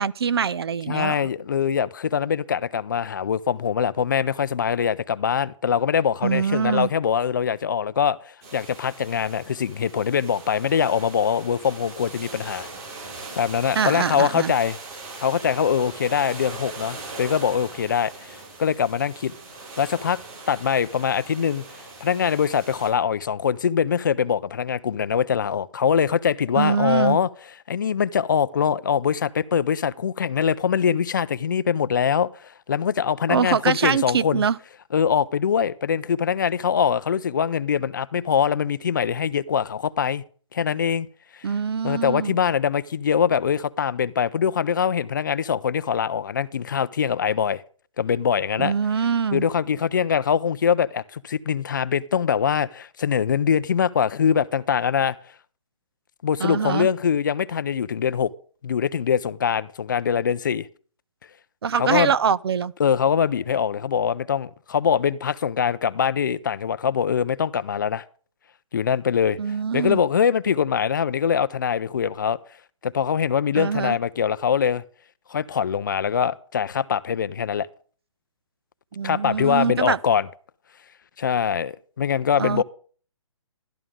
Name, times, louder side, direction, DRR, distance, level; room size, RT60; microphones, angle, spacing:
voice 1, 0.0-1.2 6.2-6.9 13.8-14.5 26.6-27.2 33.3-34.6 41.4-42.4 48.6-49.5 56.4-56.9 61.6-62.7 69.4-70.0 73.6-74.0 78.9-80.0 82.4-82.6, right 6 dB, 50° right, 0.4 m, -23 dB
voice 2, 0.9-8.2 8.5-12.7 13.4-14.8 15.2-19.3 19.8-20.2 20.5-21.6 22.0-27.3 27.7-34.4 34.9-40.2 40.5-41.1 41.3-41.5 41.8-47.6 48.0-48.7 49.3-55.2 56.2-58.3 58.6-60.7 61.7-62.1 62.8-68.0 68.7-69.4 69.7-72.4 72.8-74.8 75.3-77.7 79.0-80.3 81.2-82.6, left 7 dB, 40° left, 0.4 m, -23 dB
sound 1, 8.4-22.9, right 3 dB, 30° right, 7.5 m, -40 dB
12.5 x 11.0 x 3.6 m
hypercardioid pair, 170°, 17 cm